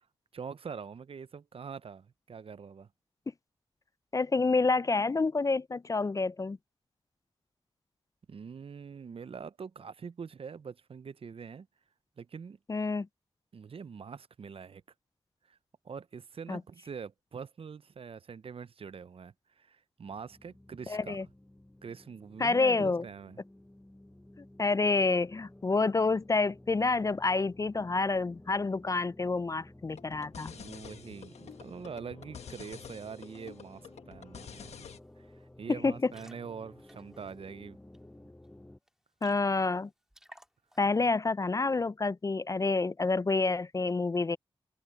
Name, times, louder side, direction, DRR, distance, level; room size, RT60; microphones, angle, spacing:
voice 1, 0.3-2.9 8.3-11.7 12.2-12.6 13.5-14.8 15.5-15.6 15.8-21.2 21.8-23.4 30.5-34.8 35.2-35.3 35.6-37.8, right 6 dB, 60° right, 0.6 m, -44 dB
voice 2, 4.1-6.6 12.7-13.1 16.5-16.6 20.9-21.3 22.4-23.0 24.6-30.5 35.7-36.1 39.2-39.9 40.8-44.4, left 3 dB, 30° left, 0.4 m, -28 dB
sound 1, 20.0-38.8, left 1 dB, 10° left, 0.9 m, -54 dB
sound 2, 29.9-35.0, left 7 dB, 90° left, 1.3 m, -49 dB
sound 3, 34.3-34.4 34.7-35.0 35.3-35.5 35.9-38.0 38.4-38.5 38.8-38.9 39.2-39.8 40.1-41.0, equal, 5° right, 2.2 m, -58 dB
cardioid pair, 45°, 11 cm